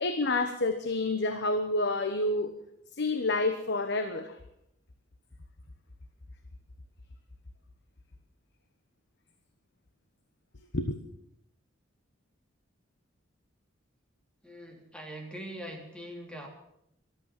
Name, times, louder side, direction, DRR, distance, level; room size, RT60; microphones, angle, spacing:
voice 1, 0.0-2.5 3.0-4.4 10.7-11.0, left 2 dB, 60° left, 8 dB, 1.1 m, -28 dB
voice 2, 14.4-16.5, equal, 5° left, 2 dB, 3.1 m, -42 dB
14.5 x 13.5 x 7.4 m, 0.76 s
head